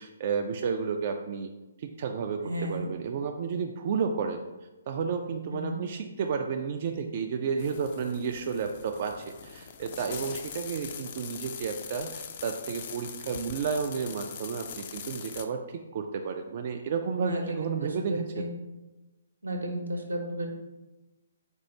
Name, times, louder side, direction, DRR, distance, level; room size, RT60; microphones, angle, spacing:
voice 1, 0.0-1.5 1.8-4.4 4.9-18.5, right 6 dB, 45° right, 4 dB, 0.3 m, -32 dB
voice 2, 2.4-2.9 5.5-5.8 17.2-18.5 19.4-20.5, equal, 80° right, 2 dB, 0.8 m, -33 dB
sound 1, 7.6-15.4, left 7 dB, 40° left, 0.4 m, -42 dB
4.4 x 2.4 x 4.1 m, 1.1 s
figure-of-eight pair, 135°, 0 cm